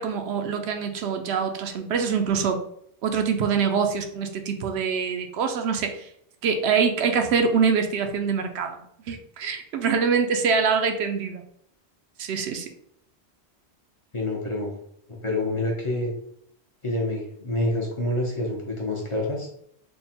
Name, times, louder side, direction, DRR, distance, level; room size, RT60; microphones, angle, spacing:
voice 1, 0.0-2.6 3.0-6.1 6.4-11.4 12.2-12.7, right 6 dB, 80° right, 6 dB, 0.8 m, -24 dB
voice 2, 14.1-14.7 15.1-16.1 16.8-19.5, left 1 dB, 35° left, -2 dB, 0.6 m, -27 dB
3.5 x 2.1 x 4.2 m, 0.69 s
omnidirectional pair, 1.1 m